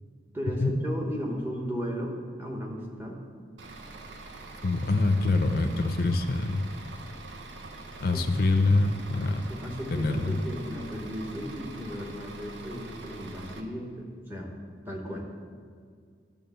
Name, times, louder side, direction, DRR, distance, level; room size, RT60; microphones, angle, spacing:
voice 1, 0.3-3.2 8.1-8.3 9.2-14.6 14.9-15.3, equal, 10° right, -1 dB, 0.9 m, -35 dB
Bus / Idling, 3.6-13.6, right 2 dB, 90° right, 0.7 m, -44 dB
voice 2, 4.6-6.6 8.0-9.4 9.9-10.4, left 2 dB, 50° left, 7 dB, 0.5 m, -25 dB
10.5 x 3.5 x 7.0 m, 2.1 s
head